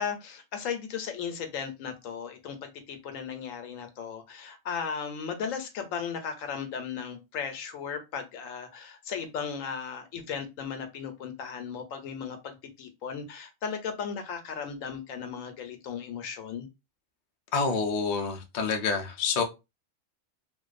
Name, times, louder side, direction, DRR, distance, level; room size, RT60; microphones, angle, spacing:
voice 1, 0.0-16.7, left 6 dB, 80° left, 1.0 m, -36 dB
voice 2, 17.5-19.4, left 5 dB, 60° left, 0.5 m, -27 dB
2.5 x 2.2 x 2.4 m
omnidirectional pair, 1.4 m